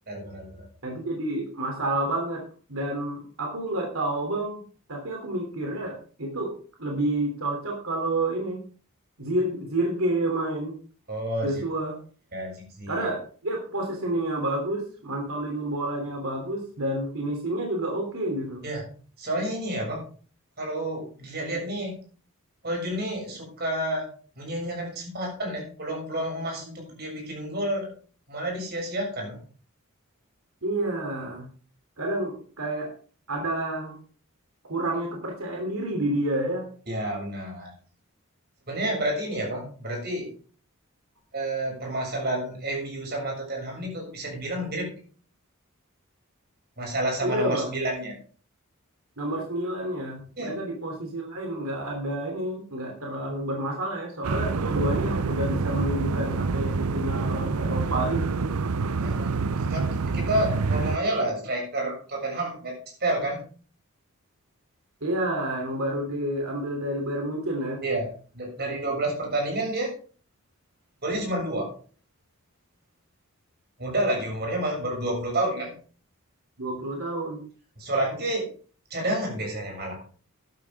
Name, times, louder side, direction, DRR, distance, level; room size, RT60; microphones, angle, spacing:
voice 1, 0.1-0.7 11.1-11.6 12.3-13.1 18.6-18.8 19.2-20.0 20.6-21.9 22.6-24.1 24.4-27.9 28.3-29.4 36.9-37.7 38.7-40.3 41.3-44.9 46.8-48.2 50.4-50.5 59.0-59.9 60.1-62.8 63.0-63.4 67.8-68.1 68.3-69.9 71.0-71.7 73.8-75.7 77.8-78.5 78.9-80.0, right 1 dB, 50° right, -1 dB, 7.0 m, -29 dB
voice 2, 0.8-2.4 2.7-4.6 4.9-6.5 6.8-8.6 9.2-10.8 11.4-12.0 12.9-18.6 30.6-31.4 32.0-32.9 33.3-33.9 34.6-36.7 47.2-47.7 49.2-58.3 65.0-67.8 76.6-77.4, right 1 dB, 75° right, 1 dB, 3.2 m, -29 dB
sound 1, 54.2-61.0, right 4 dB, 90° right, 0.6 m, -27 dB
13.0 x 11.5 x 3.7 m, 0.41 s
head